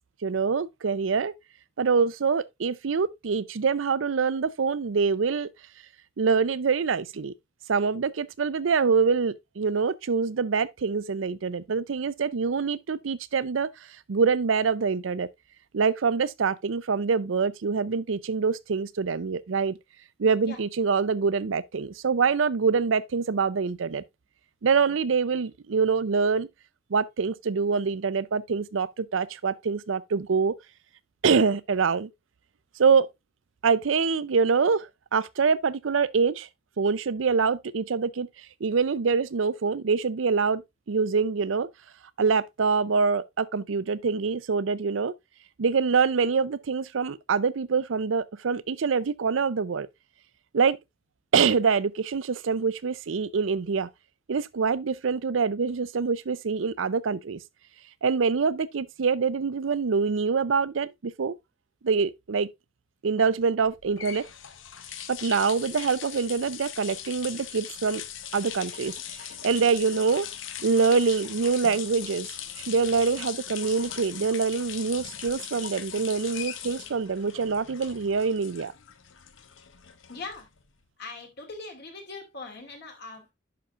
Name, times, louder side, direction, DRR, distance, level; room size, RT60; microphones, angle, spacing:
voice 1, 0.2-1.3 1.8-5.5 6.2-7.3 7.7-13.7 14.1-15.3 15.7-19.8 20.2-24.0 24.6-26.5 26.9-30.5 31.2-32.1 32.8-33.1 33.6-36.5 36.8-38.3 38.6-40.6 40.9-41.7 42.2-45.1 45.6-49.9 50.5-50.8 51.3-53.9 54.3-57.4 58.0-61.4 61.8-62.5 63.0-64.3 65.1-68.0 68.3-70.3 70.6-78.7, right 5 dB, 80° right, 0.5 m, -25 dB
sound 1, 63.6-80.7, left 9 dB, 75° left, 0.9 m, -40 dB
voice 2, 80.1-80.4 81.0-83.3, left 3 dB, 55° left, 2.5 m, -41 dB
10.0 x 5.8 x 2.5 m
head